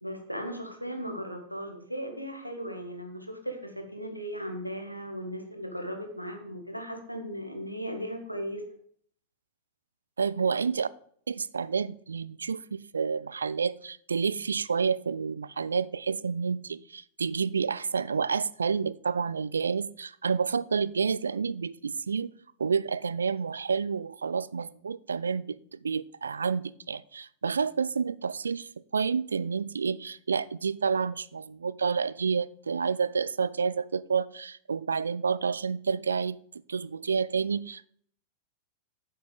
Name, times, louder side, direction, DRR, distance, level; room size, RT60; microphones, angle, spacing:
voice 1, 0.0-8.6, equal, 90° left, 1.6 m, -37 dB
voice 2, 10.2-10.9 11.3-22.3 22.6-36.4 36.7-37.9, right 5 dB, 75° right, 0.3 m, -29 dB
9.4 x 6.7 x 4.9 m
figure-of-eight pair, 90°, 0 cm